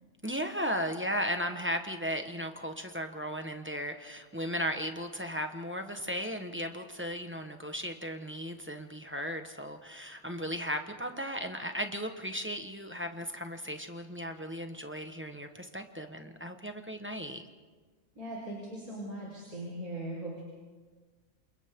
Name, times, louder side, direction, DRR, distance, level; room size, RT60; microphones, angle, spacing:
voice 1, 0.2-17.4, equal, 10° right, 5 dB, 1.2 m, -36 dB
voice 2, 18.1-20.4, right 1 dB, 80° right, -4 dB, 5.1 m, -39 dB
29.0 x 28.0 x 3.8 m, 1.4 s
omnidirectional pair, 1.5 m